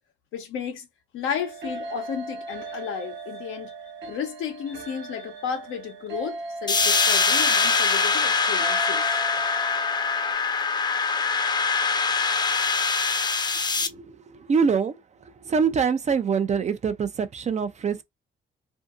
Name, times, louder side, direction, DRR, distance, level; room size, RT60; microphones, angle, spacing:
voice 1, 0.3-0.9 1.1-3.7 4.1-9.1, left 8 dB, 85° left, 0.9 m, -33 dB
sound 1, 1.3-10.3, right 3 dB, 65° right, 1.1 m, -38 dB
sound 2, 6.7-13.9, left 4 dB, 20° left, 0.4 m, -23 dB
voice 2, 13.8-14.9 15.2-18.0, right 6 dB, 35° right, 0.5 m, -25 dB
2.7 x 2.6 x 2.4 m
cardioid pair, 90°, 20 cm